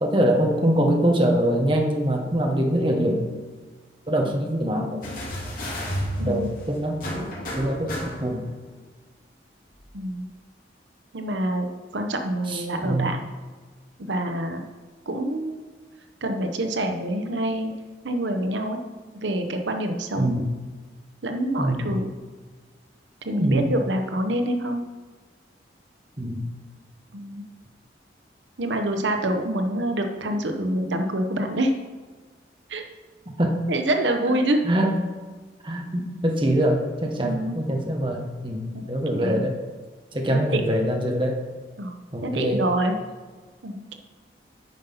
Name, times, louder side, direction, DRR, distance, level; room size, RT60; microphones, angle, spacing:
voice 1, 0.0-3.3 4.1-5.0 6.2-8.4 12.5-13.1 20.2-20.4 21.6-21.9 23.4-23.7 26.2-26.4 33.4-33.5 34.3-34.4 34.6-35.0 35.6-39.6 40.1-41.3 42.1-42.6, right 1 dB, 25° right, 1 dB, 1.0 m, -24 dB
sound 1, 5.0-8.5 9.7-9.8, equal, 50° left, 2.5 m, -32 dB
voice 2, 6.2-6.5 9.9-10.3 11.1-13.2 14.0-14.6 15.1-15.6 16.2-17.7 18.0-18.8 19.2-20.4 21.2-22.1 23.2-24.8 27.1-27.4 28.6-31.7 32.7-32.8 33.7-34.6 37.2-37.6 38.7-38.8 39.1-39.5 40.3-40.6 41.8-41.9 42.2-43.0 43.6-44.0, right 1 dB, 85° right, 5 dB, 0.9 m, -26 dB
9.5 x 5.5 x 5.6 m, 1.4 s
head